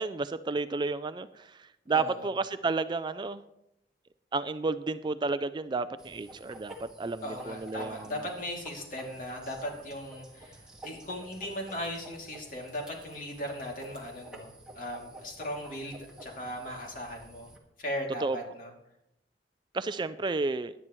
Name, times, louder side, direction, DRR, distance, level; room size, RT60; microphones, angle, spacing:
voice 1, 0.0-1.5 1.9-3.4 4.3-8.1 18.2-18.4 19.7-20.7, right 3 dB, 25° right, 12 dB, 0.3 m, -31 dB
voice 2, 1.9-2.3 7.2-17.5 17.8-18.7, equal, 50° left, 0 dB, 2.7 m, -38 dB
sound 1, 6.0-17.6, right 1 dB, 5° right, 1.8 m, -50 dB
18.0 x 11.0 x 3.1 m, 0.82 s
head